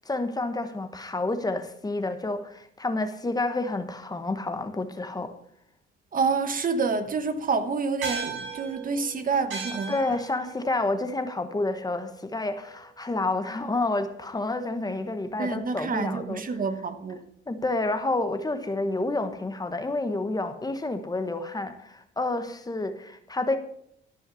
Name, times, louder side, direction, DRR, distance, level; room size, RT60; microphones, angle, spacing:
voice 1, 0.1-5.3 9.9-16.4 17.5-23.6, left 2 dB, 20° left, 1.2 m, -29 dB
voice 2, 6.1-10.0 15.4-17.2, right 4 dB, 45° right, 1.1 m, -28 dB
sound 1, 8.0-12.7, right 4 dB, 75° right, 6.1 m, -38 dB
13.0 x 5.6 x 7.0 m
cardioid pair, 90°, 20 cm